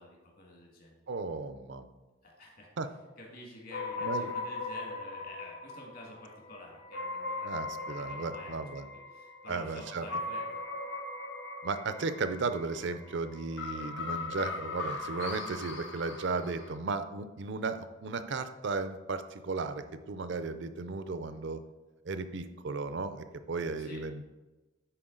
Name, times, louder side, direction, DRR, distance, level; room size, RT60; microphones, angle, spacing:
voice 1, 0.0-0.9 2.2-2.7 3.2-8.5 9.1-10.7 23.8-24.0, left 1 dB, 50° left, -1 dB, 1.8 m, -49 dB
voice 2, 1.1-1.9 2.8-2.9 4.0-4.3 7.4-8.9 9.5-10.1 11.6-21.6 22.0-24.2, right 4 dB, 65° right, 10 dB, 0.5 m, -35 dB
sound 1, 3.7-16.8, left 3 dB, 80° left, 1.0 m, -39 dB
10.0 x 4.4 x 3.8 m, 1.1 s
head